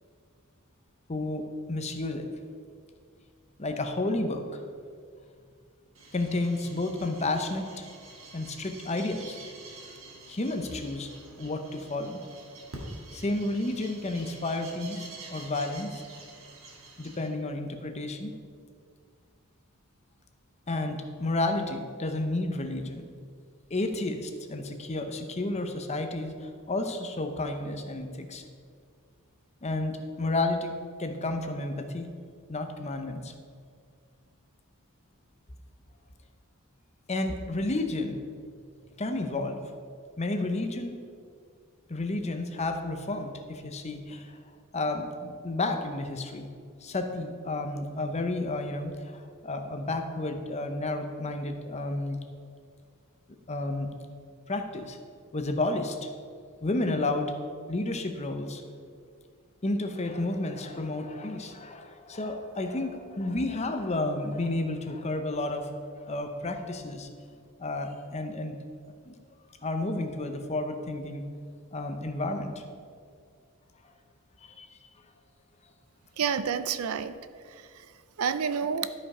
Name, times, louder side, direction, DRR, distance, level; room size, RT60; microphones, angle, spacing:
voice 1, 1.1-2.3 3.6-4.6 6.1-7.9 8.3-9.4 10.3-11.1 11.4-12.2 13.1-16.0 17.0-18.3 20.7-23.1 23.7-28.4 29.6-30.7 31.0-32.1 32.5-33.3 37.1-38.2 39.0-39.6 40.2-41.0 41.9-44.4 44.7-46.5 46.8-52.2 53.5-53.9 54.5-55.0 55.3-56.1 56.6-57.3 57.7-58.6 59.6-67.1 67.6-68.6 69.1-69.2 69.6-71.2 71.7-72.6 74.4-74.9, left 2 dB, 30° left, 6 dB, 0.7 m, -31 dB
sound 1, 5.9-17.3, right 2 dB, 65° right, 1.8 m, -47 dB
voice 2, 76.2-77.2 77.5-77.9 78.2-78.9, right 7 dB, 80° right, 11 dB, 0.5 m, -29 dB
12.5 x 5.4 x 4.9 m, 2.2 s
head